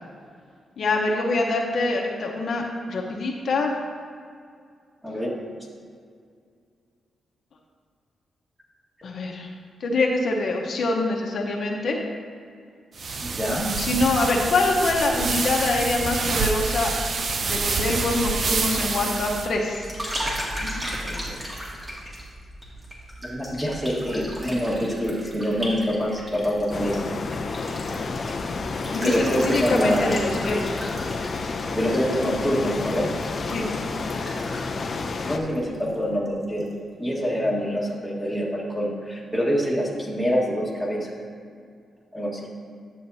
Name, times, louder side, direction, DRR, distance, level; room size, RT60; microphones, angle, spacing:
voice 1, 0.8-3.7 9.0-9.5 9.8-12.0 13.8-16.9 17.4-19.8 20.6-21.4 28.9-30.9 33.5-33.7, left 2 dB, 65° left, 0 dB, 0.9 m, -25 dB
sound 1, 13.0-19.5, right 4 dB, 50° right, 0.5 m, -27 dB
voice 2, 13.2-13.7 23.2-27.0 27.7-27.8 29.0-30.2 31.7-33.1 35.2-36.7 37.0-41.2 42.1-42.4, equal, 5° right, -4 dB, 1.6 m, -25 dB
sound 2, 17.6-36.0 36.2-36.7, equal, 25° right, 1.9 m, -37 dB
sound 3, 26.7-35.4, left 4 dB, 45° left, 0.5 m, -30 dB
10.5 x 7.5 x 2.7 m, 2.2 s
wide cardioid pair, 120°, 0 cm